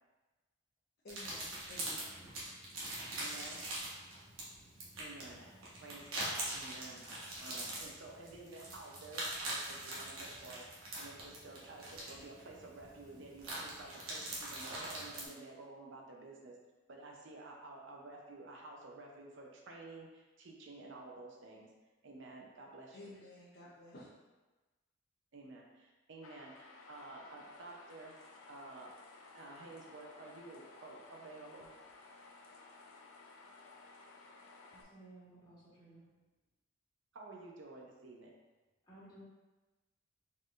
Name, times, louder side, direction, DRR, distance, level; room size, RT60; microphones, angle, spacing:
voice 1, 1.0-2.1 22.9-24.2, left 1 dB, 45° left, -8 dB, 0.6 m, -53 dB
sound 1, 1.1-15.2, right 1 dB, 85° right, 1.1 m, -43 dB
voice 2, 3.2-3.6 5.0-7.0 7.4-10.7 11.0-16.6 16.9-21.7 22.0-23.1 25.3-28.9 29.3-31.7 37.1-38.3, right 2 dB, 60° right, -1 dB, 0.6 m, -51 dB
sound 2, 26.2-34.8, left 3 dB, 90° left, 0.5 m, -57 dB
voice 3, 34.7-36.0 37.4-37.5 38.8-39.2, right 2 dB, 20° left, -9 dB, 1.3 m, -57 dB
4.1 x 3.8 x 2.5 m, 1.2 s
head